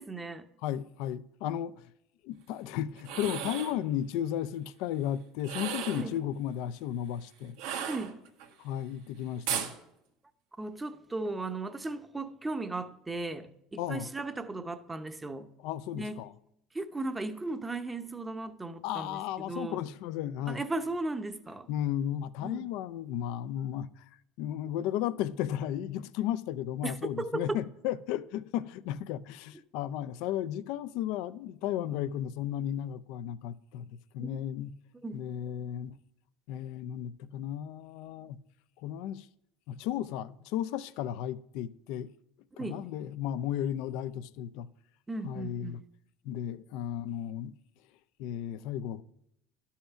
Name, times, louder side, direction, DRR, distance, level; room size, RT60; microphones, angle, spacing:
voice 1, 0.0-0.5 5.9-6.1 7.9-8.2 10.6-15.5 15.9-16.2 16.7-19.8 20.5-21.7 22.4-22.6 26.8-27.4 34.2-34.4 35.0-35.2 42.5-42.8 45.1-45.8, right 2 dB, 15° right, 0.7 m, -36 dB
voice 2, 0.6-1.9 2.2-7.6 8.6-9.7 13.8-14.1 15.6-16.3 18.8-20.6 21.7-24.0 24.4-33.8 34.1-34.8 35.1-36.0 36.5-38.4 38.8-39.3 39.7-42.1 42.6-44.7 45.2-45.8 46.2-47.6 48.2-49.0, left 11 dB, 75° left, 0.4 m, -34 dB
sound 1, 3.0-3.8 5.4-6.1 7.6-8.5 9.5-9.7, right 9 dB, 85° right, 1.4 m, -35 dB
11.5 x 5.7 x 5.7 m
supercardioid pair, 115°, 0 cm